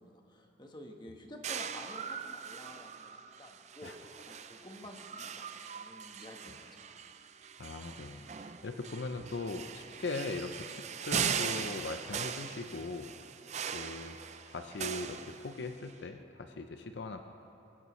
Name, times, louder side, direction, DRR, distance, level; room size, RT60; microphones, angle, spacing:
voice 1, 0.0-3.9 4.3-6.9, left 1 dB, 25° left, 2 dB, 1.2 m, -51 dB
sound 1, 1.4-15.9, right 7 dB, 35° right, 0.4 m, -40 dB
voice 2, 7.6-13.1 13.7-14.2 14.4-17.2, left 3 dB, 65° left, 6 dB, 0.6 m, -40 dB
22.5 x 15.5 x 3.1 m, 3.0 s
head